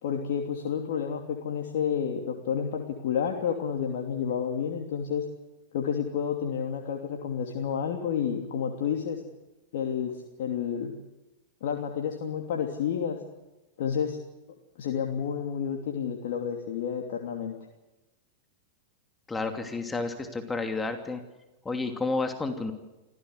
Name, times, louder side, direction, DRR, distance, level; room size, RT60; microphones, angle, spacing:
voice 1, 0.0-5.2 5.7-9.2 9.7-10.9 11.6-13.2 13.8-14.2 14.8-17.5, left 7 dB, 65° left, 2 dB, 2.9 m, -30 dB
voice 2, 19.3-21.2 21.6-22.7, left 3 dB, 15° left, 6 dB, 2.8 m, -31 dB
25.5 x 16.0 x 8.1 m, 1.0 s
hypercardioid pair, 100°, 0 cm